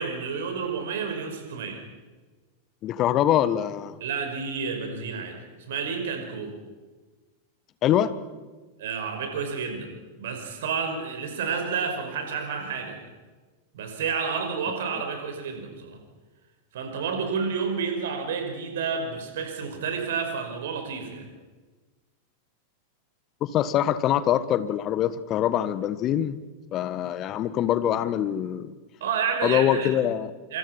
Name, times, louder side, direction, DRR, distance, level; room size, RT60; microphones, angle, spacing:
voice 1, 0.0-1.8 4.0-6.6 8.8-13.0 13.7-16.0 16.7-21.3 29.0-30.0 30.5-30.6, right 5 dB, 60° right, 5 dB, 5.4 m, -30 dB
voice 2, 2.8-4.0 7.8-8.1 23.4-26.4 26.7-28.7 29.4-30.3, left 11 dB, 35° left, 15 dB, 1.5 m, -24 dB
26.0 x 26.0 x 5.9 m, 1.3 s
figure-of-eight pair, 90°, 0 cm